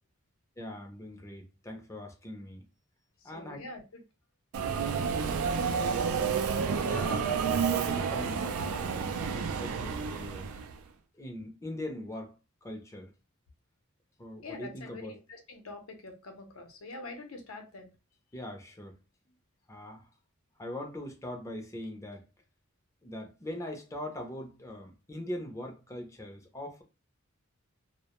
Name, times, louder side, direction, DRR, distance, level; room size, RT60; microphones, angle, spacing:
voice 1, 0.6-2.7 3.2-3.6 4.8-5.0 6.8-10.5 11.2-12.3 12.6-13.1 14.2-15.2 18.3-18.9 19.7-20.0 20.6-22.2 23.0-26.8, left 1 dB, 15° left, 0.5 m, -41 dB
voice 2, 3.2-4.0 5.5-6.4 14.4-17.9, left 2 dB, 80° left, 0.6 m, -46 dB
Subway metro underground, 4.5-10.8, right 6 dB, 90° right, 0.3 m, -30 dB
2.1 x 2.1 x 2.9 m
head